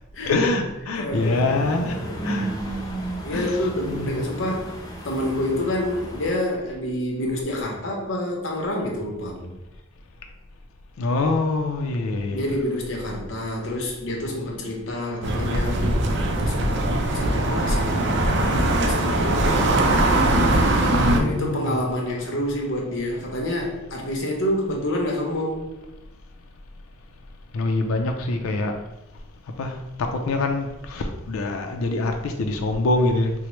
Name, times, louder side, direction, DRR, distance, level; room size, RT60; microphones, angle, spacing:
voice 1, 0.3-2.5 3.3-3.6 3.9-4.2 11.0-12.4 21.0-21.7 27.5-28.7 29.6-33.3, left 2 dB, 85° left, 4 dB, 0.4 m, -25 dB
voice 2, 1.0-2.8 3.2-4.8 5.0-9.5 12.3-19.5 21.1-25.7, left 1 dB, 65° left, 0 dB, 0.8 m, -28 dB
sound 1, 1.1-6.3, right 1 dB, 15° left, 0.5 m, -33 dB
sound 2, 15.2-21.2, right 1 dB, 55° right, 0.4 m, -21 dB
4.4 x 2.0 x 3.0 m, 0.97 s
head